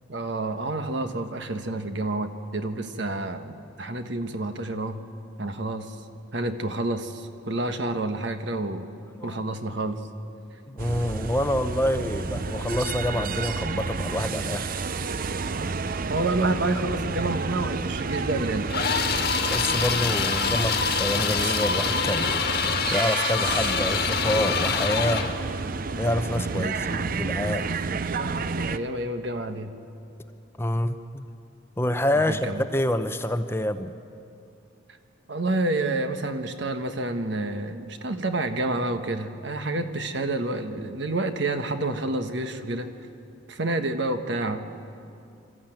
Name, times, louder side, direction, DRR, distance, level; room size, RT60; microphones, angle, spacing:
voice 1, 0.1-5.0 5.4-6.0 6.3-8.9 9.2-10.1 15.9-18.8 20.5-20.6 26.5-27.0 27.8-29.7 32.1-32.6 35.3-42.9 43.5-44.7, right 2 dB, 60° right, 8 dB, 1.3 m, -29 dB
voice 2, 10.7-14.8 19.5-22.6 22.9-25.3 26.0-27.7 30.6-31.2 31.8-33.9, left 1 dB, 10° left, 9 dB, 0.7 m, -27 dB
sound 1, 10.8-28.8, right 4 dB, 45° right, 0.6 m, -30 dB
sound 2, 18.7-25.4, left 6 dB, 55° left, 1.5 m, -26 dB
27.0 x 13.5 x 9.1 m, 2.6 s
head